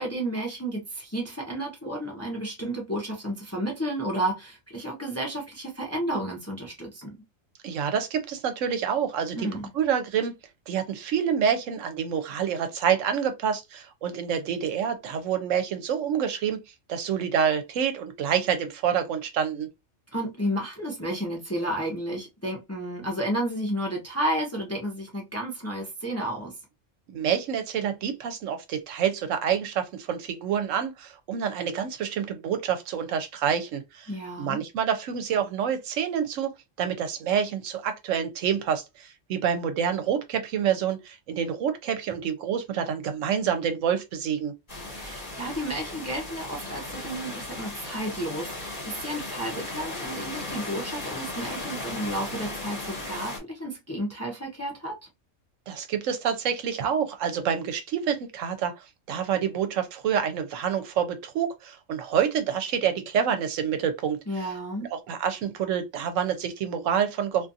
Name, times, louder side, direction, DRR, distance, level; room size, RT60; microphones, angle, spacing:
voice 1, 0.0-7.1 9.3-9.7 20.1-26.5 34.1-34.6 44.9-55.0 64.3-64.9, right 1 dB, 15° left, 0.6 m, -32 dB
voice 2, 7.6-9.5 9.7-10.3 10.7-16.6 16.9-19.7 27.1-34.1 34.4-36.5 36.8-44.5 55.7-64.5 64.9-67.5, right 8 dB, 75° right, 0.9 m, -27 dB
sound 1, 44.7-53.4, left 2 dB, 40° left, 1.5 m, -36 dB
2.5 x 2.4 x 2.6 m
omnidirectional pair, 1.4 m